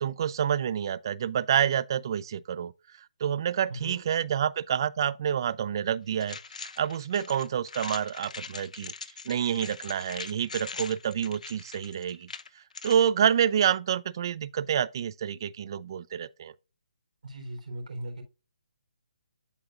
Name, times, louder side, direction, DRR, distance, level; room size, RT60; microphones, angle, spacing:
voice 1, 0.0-2.7 3.2-6.4 6.8-8.9 9.3-12.3 12.6-16.5, right 9 dB, 35° right, 0.4 m, -28 dB
sound 1, 6.2-13.1, left 5 dB, 65° left, 0.8 m, -42 dB
voice 2, 17.2-18.2, right 1 dB, 65° right, 3.8 m, -38 dB
12.0 x 4.1 x 2.5 m
hypercardioid pair, 170°, 4 cm